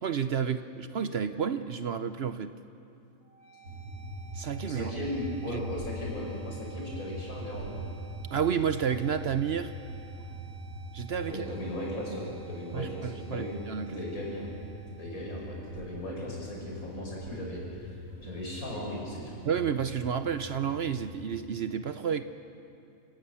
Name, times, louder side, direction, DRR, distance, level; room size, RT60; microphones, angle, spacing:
voice 1, 0.0-2.5 4.3-4.9 5.5-5.6 8.3-9.7 10.9-11.4 12.7-13.9 19.4-22.2, right 7 dB, 55° right, 11 dB, 0.8 m, -30 dB
sound 1, 3.2-17.2, right 9 dB, 30° left, 7.9 m, -55 dB
sound 2, 3.6-21.2, equal, 80° right, 3.1 m, -42 dB
voice 2, 4.7-7.8 11.2-13.5 13.9-14.5 15.0-19.4, left 1 dB, 80° left, -2 dB, 6.0 m, -37 dB
29.5 x 17.0 x 7.0 m, 2.5 s
omnidirectional pair, 1.5 m